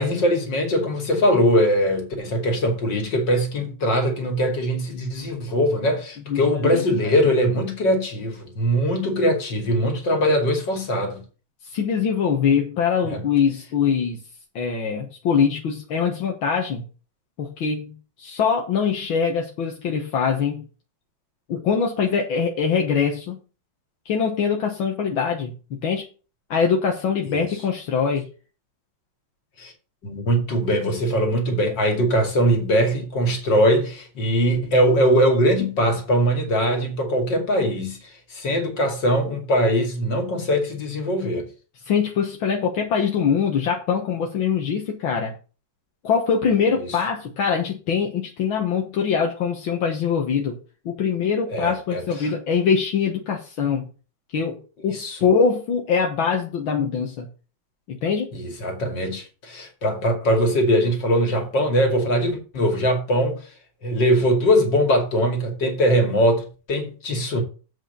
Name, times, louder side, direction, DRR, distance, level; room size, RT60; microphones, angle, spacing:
voice 1, 0.0-11.2 13.0-13.2 27.3-27.4 29.6-29.7 30.0-38.0 38.3-41.5 51.5-52.3 54.9-55.2 58.3-63.4 63.8-67.4, equal, 60° left, 3.1 m, -21 dB
voice 2, 6.3-7.1 11.6-14.2 14.6-16.9 17.4-20.6 21.5-23.4 24.1-26.1 26.5-28.3 41.9-45.3 46.0-50.6 50.9-53.9 54.3-54.6 54.8-57.3 57.9-58.3, left 6 dB, 80° left, 2.1 m, -23 dB
8.0 x 5.9 x 6.7 m
omnidirectional pair, 2.2 m